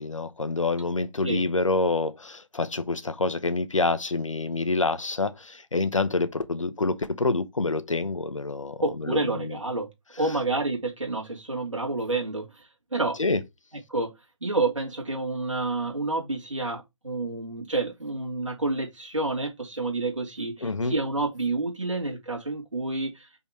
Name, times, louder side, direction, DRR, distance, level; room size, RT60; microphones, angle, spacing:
voice 1, 0.0-9.5 13.2-13.4 20.6-21.0, left 3 dB, 75° left, 1.0 m, -27 dB
voice 2, 8.8-9.9 10.2-13.2 13.9-14.1 14.4-23.3, right 2 dB, 75° right, 2.8 m, -29 dB
5.6 x 4.1 x 4.4 m
figure-of-eight pair, 145°, 17 cm